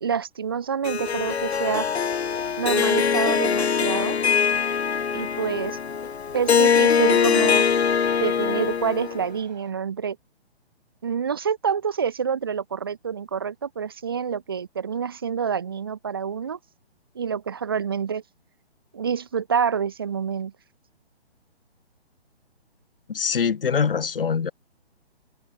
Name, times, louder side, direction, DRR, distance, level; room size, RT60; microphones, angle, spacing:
voice 1, 0.0-1.9 2.6-4.2 5.1-5.8 6.3-7.7 8.2-10.2 11.0-16.6 17.1-18.2 18.9-20.5, right 7 dB, 25° right, 0.5 m, -27 dB
Harp, 0.8-9.3, left 6 dB, 85° left, 0.5 m, -22 dB
sound 1, 7.4-9.7, right 8 dB, 45° right, 5.5 m, -60 dB
voice 2, 23.1-24.5, left 6 dB, 60° left, 0.9 m, -23 dB
figure-of-eight pair, 135°, 32 cm